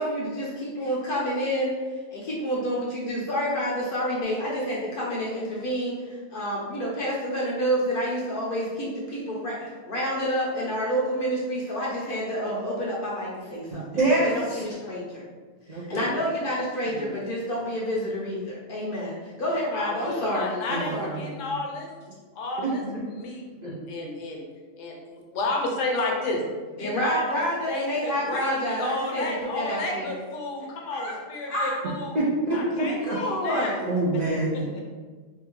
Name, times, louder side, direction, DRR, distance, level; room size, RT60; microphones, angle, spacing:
voice 1, 0.0-1.7 2.1-15.3 15.7-21.1 26.8-29.3 29.5-30.2 30.9-31.1 31.5-31.8 33.0-33.9, equal, 60° left, -5 dB, 0.6 m, -29 dB
voice 2, 13.7-14.6 15.7-16.0 17.0-17.1 20.7-20.9 21.3-21.5 22.8-23.0 23.6-23.7 32.1-32.6 33.1-33.2 33.9-34.8, right 2 dB, 75° right, -7 dB, 0.4 m, -26 dB
voice 3, 19.7-21.9 22.3-24.5 24.8-24.9 25.3-26.4 26.7-27.4 27.7-32.1 32.5-33.8 34.7-34.8, left 2 dB, 75° left, 0 dB, 1.0 m, -32 dB
2.7 x 2.2 x 2.9 m, 1.4 s
omnidirectional pair, 1.3 m